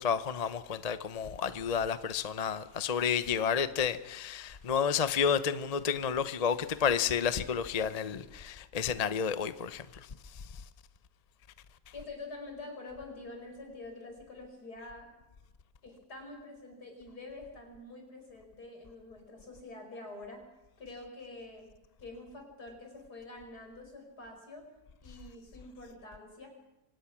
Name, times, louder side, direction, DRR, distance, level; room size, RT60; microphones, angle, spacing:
voice 1, 0.0-10.1 10.3-10.5, left 7 dB, 35° left, 0.7 m, -31 dB
voice 2, 11.9-15.1 15.8-20.4 20.8-21.7 22.0-24.7 25.0-26.5, left 2 dB, 75° left, 5.6 m, -46 dB
25.0 x 18.5 x 6.0 m
omnidirectional pair, 1.7 m